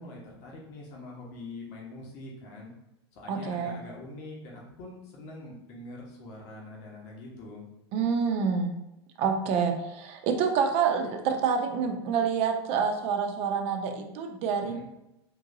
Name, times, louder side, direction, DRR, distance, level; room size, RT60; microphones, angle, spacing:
voice 1, 0.0-2.7 3.1-7.6 14.6-14.8, left 2 dB, 55° left, -2 dB, 1.1 m, -44 dB
voice 2, 3.3-3.7 7.9-8.7 9.2-14.8, right 6 dB, 50° right, 4 dB, 0.6 m, -27 dB
3.7 x 2.7 x 2.6 m, 0.88 s
hypercardioid pair, 90°, 14 cm